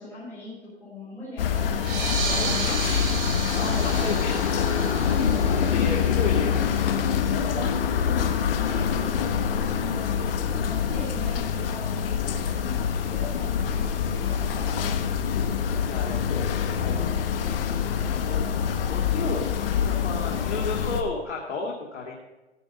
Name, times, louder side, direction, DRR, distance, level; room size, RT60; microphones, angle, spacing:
voice 1, 0.0-1.8 2.2-2.9 3.5-4.2 5.0-5.5 8.0-14.9, left 1 dB, 5° left, -11 dB, 3.9 m, -40 dB
sound 1, 1.4-21.0, left 7 dB, 50° left, 1.3 m, -25 dB
sound 2, 1.7-6.9, right 4 dB, 45° right, 3.2 m, -33 dB
voice 2, 2.4-3.1 3.5-6.6 7.1-7.8 15.5-17.2 17.8-19.6 19.8-22.2, left 4 dB, 80° left, -2 dB, 2.4 m, -34 dB
15.0 x 7.0 x 5.4 m, 1.1 s
hypercardioid pair, 155°, 35 cm